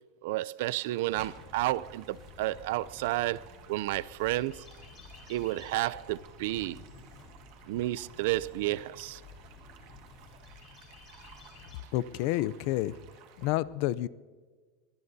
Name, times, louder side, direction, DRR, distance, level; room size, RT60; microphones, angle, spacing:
voice 1, 0.2-4.6 5.3-6.8 7.7-9.2, right 17 dB, 65° right, 0.4 m, -31 dB
sound 1, 0.6-13.5, right 9 dB, 50° right, 1.7 m, -57 dB
sound 2, 1.1-11.8, left 4 dB, 30° left, 4.8 m, -52 dB
voice 2, 11.9-12.9 13.4-14.1, left 15 dB, 55° left, 0.5 m, -29 dB
23.0 x 19.0 x 2.7 m
supercardioid pair, 155°, 0 cm